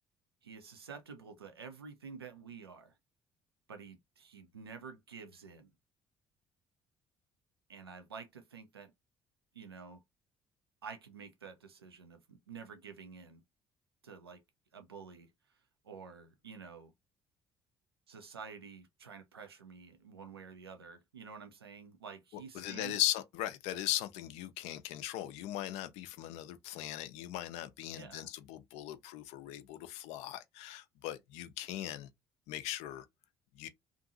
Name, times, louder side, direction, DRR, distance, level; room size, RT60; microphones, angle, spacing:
voice 1, 0.4-2.9 3.7-5.7 7.7-8.9 9.5-10.0 10.8-13.4 14.0-14.4 14.7-15.3 15.8-16.9 18.1-23.0 27.9-28.3, right 5 dB, 85° right, 0.4 m, -49 dB
voice 2, 22.5-32.1 32.5-33.1 33.6-33.7, left 13 dB, 60° left, 0.4 m, -38 dB
2.6 x 2.5 x 2.5 m
figure-of-eight pair, 50°, 13 cm